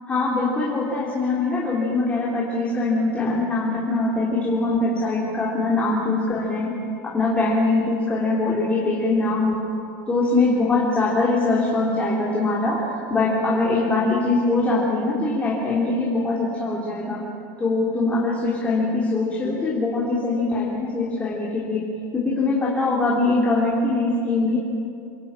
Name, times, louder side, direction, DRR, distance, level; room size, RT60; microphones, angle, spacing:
voice 1, 0.1-6.7 7.0-9.6 10.1-17.3 17.6-21.9 22.1-24.6, left 3 dB, 10° left, -4 dB, 3.5 m, -22 dB
27.5 x 19.5 x 9.1 m, 2.7 s
supercardioid pair, 155°, 11 cm